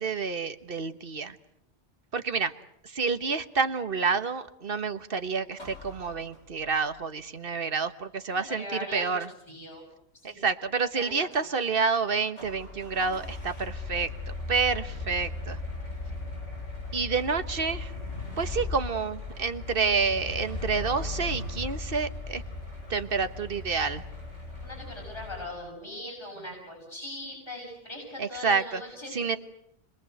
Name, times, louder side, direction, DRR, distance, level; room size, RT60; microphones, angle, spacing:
voice 1, 0.0-1.4 2.1-2.5 2.8-8.6 8.9-9.3 10.2-15.6 16.9-17.9 18.4-22.4 22.9-24.0 28.2-28.8 29.1-29.4, right 5 dB, 50° right, 10 dB, 1.5 m, -29 dB
sound 1, 5.5-6.8 12.4-25.5, left 3 dB, 85° left, 7.3 m, -37 dB
voice 2, 8.5-9.2 9.5-9.8 10.1-10.5 11.0-11.5 24.6-29.4, left 1 dB, 20° left, -1 dB, 7.0 m, -40 dB
30.0 x 22.5 x 8.0 m, 0.75 s
omnidirectional pair, 1.2 m